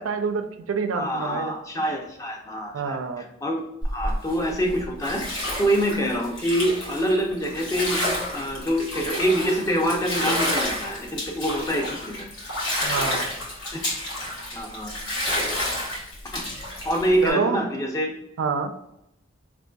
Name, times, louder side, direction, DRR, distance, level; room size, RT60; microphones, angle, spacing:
voice 1, 0.0-1.5 2.7-3.2 12.8-13.3 17.2-17.6 18.4-18.7, right 5 dB, 80° right, 8 dB, 0.4 m, -27 dB
voice 2, 0.9-12.3 13.7-13.8 14.5-14.9 16.3-16.5 16.8-18.1, equal, 15° left, 2 dB, 0.4 m, -26 dB
Bathtub (filling or washing), 3.8-17.3, left 1 dB, 75° left, 1.0 m, -30 dB
4.2 x 2.5 x 2.2 m, 0.83 s
head